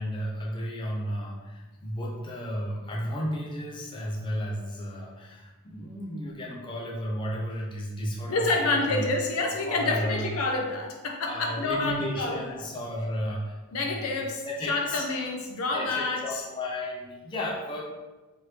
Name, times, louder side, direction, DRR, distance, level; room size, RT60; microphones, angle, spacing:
voice 1, 0.0-9.1 9.6-10.3 11.2-13.9 14.4-15.0 15.7-17.8, equal, 20° left, -3 dB, 0.5 m, -33 dB
voice 2, 8.3-12.6 13.7-16.4, left 3 dB, 75° left, 2 dB, 0.5 m, -28 dB
3.0 x 2.6 x 3.2 m, 1.2 s
head